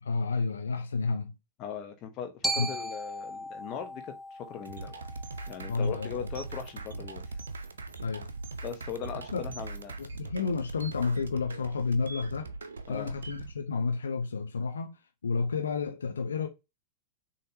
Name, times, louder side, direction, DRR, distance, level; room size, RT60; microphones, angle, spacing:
voice 1, 0.0-1.3 2.6-2.7 5.7-6.3 8.0-8.3 9.3-9.4 10.0-12.5 12.9-16.5, left 4 dB, 70° left, 0.6 m, -31 dB
voice 2, 1.6-4.9 5.5-7.2 8.6-10.0 12.9-13.1, left 7 dB, 40° left, 1.2 m, -39 dB
Glockenspiel, 2.4-6.6, right 1 dB, 5° right, 0.6 m, -37 dB
sound 1, 4.7-13.5, right 3 dB, 70° right, 0.6 m, -41 dB
6.5 x 2.8 x 2.8 m
figure-of-eight pair, 90°, 0 cm